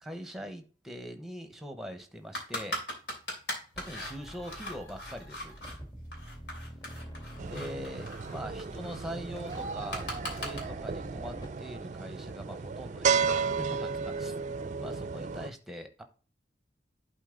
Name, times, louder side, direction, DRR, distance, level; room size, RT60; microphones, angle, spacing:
voice 1, 0.0-2.8 3.8-5.6 7.3-14.3 14.8-16.0, equal, ahead, 1.0 m, -42 dB
sound 1, 2.3-5.8 6.1-10.6, equal, 75° left, 3.0 m, -39 dB
sound 2, 3.7-11.5, equal, 20° left, 1.7 m, -46 dB
sound 3, 7.4-15.5, right 5 dB, 40° right, 0.4 m, -33 dB
11.0 x 4.3 x 3.8 m
head